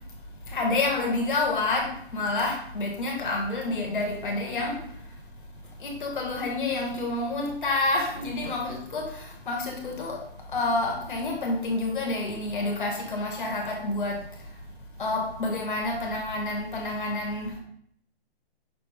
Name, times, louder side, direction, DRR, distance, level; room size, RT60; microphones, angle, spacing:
voice 1, 0.5-4.8 5.8-10.2 10.5-14.2 15.0-17.6, left 2 dB, 50° left, 0 dB, 1.3 m, -28 dB
5.6 x 2.6 x 3.4 m, 0.66 s
hypercardioid pair, 175°, 32 cm